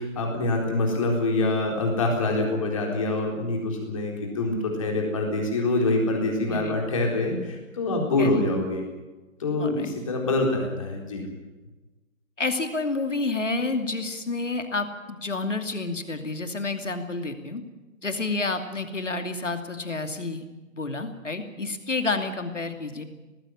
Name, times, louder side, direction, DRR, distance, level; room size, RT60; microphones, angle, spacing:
voice 1, 0.0-8.8 9.4-11.2, left 2 dB, 25° left, 1 dB, 4.0 m, -25 dB
voice 2, 9.6-9.9 12.4-17.6 18.0-20.4 20.7-23.0, left 3 dB, 60° left, 7 dB, 2.6 m, -29 dB
19.0 x 16.0 x 9.9 m, 1.2 s
figure-of-eight pair, 155°, 41 cm